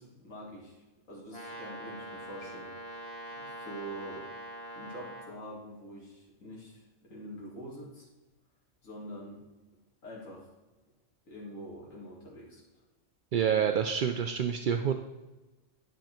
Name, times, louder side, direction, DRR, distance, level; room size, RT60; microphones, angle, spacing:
voice 1, 0.0-4.3 4.7-8.1 8.8-9.4 10.0-10.5 11.3-12.6 13.7-13.8, equal, 80° left, -5 dB, 2.6 m, -45 dB
Brass instrument, 1.3-5.4, equal, 50° left, 1.9 m, -43 dB
voice 2, 13.3-14.9, right 8 dB, 60° right, 6 dB, 0.5 m, -27 dB
10.5 x 6.1 x 4.4 m, 1.1 s
omnidirectional pair, 1.4 m